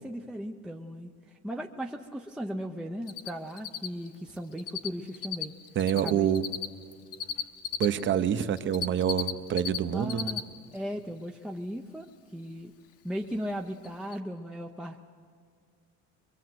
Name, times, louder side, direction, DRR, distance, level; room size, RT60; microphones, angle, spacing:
voice 1, 0.0-5.5 6.0-6.3 9.9-10.4 10.7-12.1 12.3-12.7 13.0-15.0, equal, ahead, 2 dB, 0.5 m, -37 dB
Cricket, 3.1-3.3 3.6-4.9 5.1-7.9 8.4-9.8 10.0-10.4 10.7-10.8 13.3-13.4 13.8-13.9 14.1-14.2, left 9 dB, 50° left, 1.0 m, -33 dB
voice 2, 5.8-6.4 7.8-10.3, right 9 dB, 40° right, 11 dB, 0.8 m, -27 dB
23.0 x 22.5 x 7.8 m, 2.1 s
cardioid pair, 165°, 30 cm